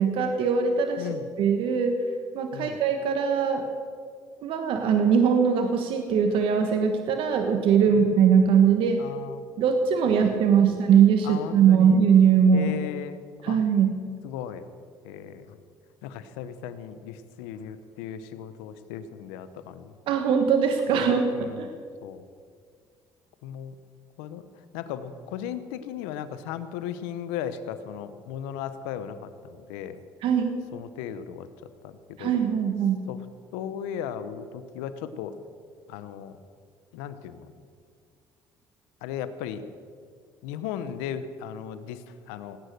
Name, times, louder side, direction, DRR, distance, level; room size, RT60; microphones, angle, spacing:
voice 1, 0.0-1.1 1.4-2.0 2.3-3.6 4.4-9.0 9.6-12.7 13.4-14.0 20.1-21.7 30.2-30.6 32.2-33.0, right 7 dB, 70° right, 6 dB, 1.3 m, -21 dB
voice 2, 1.0-1.3 2.5-2.8 7.8-8.1 9.0-9.4 11.2-12.0 12.5-13.6 14.2-14.6 15.0-15.6 16.0-19.9 20.9-21.8 22.0-22.2 23.4-23.7 24.2-24.4 24.7-30.0 30.7-31.5 31.8-32.3 33.1-33.2 33.5-35.4 35.9-36.4 36.9-37.5 39.0-39.7 40.4-42.6, left 9 dB, 90° left, 12 dB, 0.9 m, -36 dB
17.5 x 9.1 x 6.7 m, 2.1 s
supercardioid pair, 75°, 9 cm